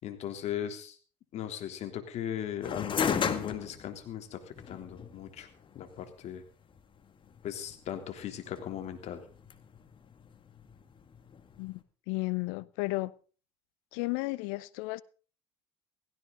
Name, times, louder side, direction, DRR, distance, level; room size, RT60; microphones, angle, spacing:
voice 1, 0.0-1.0 1.3-5.5 5.7-6.4 7.4-9.3, left 10 dB, 55° left, 3.4 m, -38 dB
sound 1, 2.6-11.8, left 6 dB, 40° left, 2.0 m, -37 dB
voice 2, 11.6-13.1 13.9-15.0, left 22 dB, 75° left, 0.8 m, -33 dB
17.0 x 16.5 x 4.0 m
supercardioid pair, 80°, 13 cm